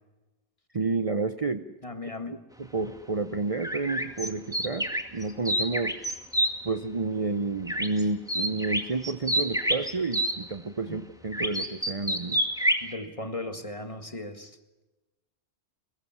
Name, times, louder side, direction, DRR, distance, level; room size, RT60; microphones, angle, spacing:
voice 1, 0.7-1.7 2.3-6.0 6.6-12.4, right 3 dB, 35° right, 10 dB, 0.8 m, -30 dB
voice 2, 1.8-2.4 10.9-11.0 12.8-14.6, left 2 dB, 30° left, 8 dB, 1.9 m, -37 dB
sound 1, 3.6-6.5 7.7-8.0 8.3-10.3 11.3-12.9, equal, 5° right, 2.1 m, -27 dB
23.5 x 20.5 x 7.2 m, 1.1 s
omnidirectional pair, 1.2 m